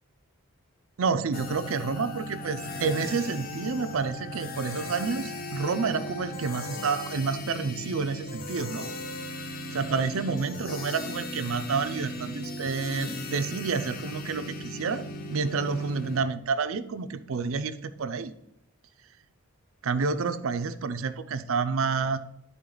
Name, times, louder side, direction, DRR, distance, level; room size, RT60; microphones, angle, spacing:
voice 1, 1.0-8.9 9.7-15.0 15.3-18.3 19.8-22.2, right 5 dB, 65° right, 11 dB, 0.5 m, -29 dB
sound 1, 1.3-16.2, left 1 dB, 40° left, 0.6 m, -37 dB
11.0 x 3.8 x 3.9 m, 0.76 s
head